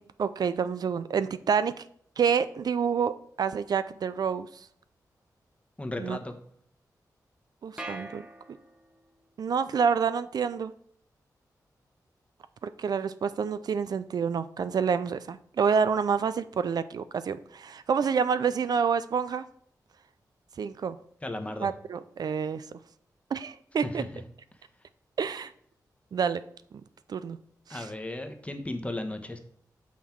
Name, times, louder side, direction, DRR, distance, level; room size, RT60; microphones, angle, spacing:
voice 1, 0.2-1.8 2.2-4.7 6.0-6.2 7.6-8.3 9.4-10.7 12.6-19.5 20.6-21.0 21.6-22.6 23.3-24.0 25.2-25.5 26.1-26.4 27.1-27.4 27.7-27.8, right 6 dB, 65° right, 13 dB, 0.4 m, -28 dB
voice 2, 5.8-6.3 21.2-21.7 23.8-24.2 27.7-29.4, left 1 dB, 20° left, 6 dB, 1.0 m, -35 dB
sound 1, 7.8-9.1, right 1 dB, 15° right, 1.0 m, -42 dB
6.3 x 5.7 x 4.4 m, 0.64 s
cardioid pair, 75°, 7 cm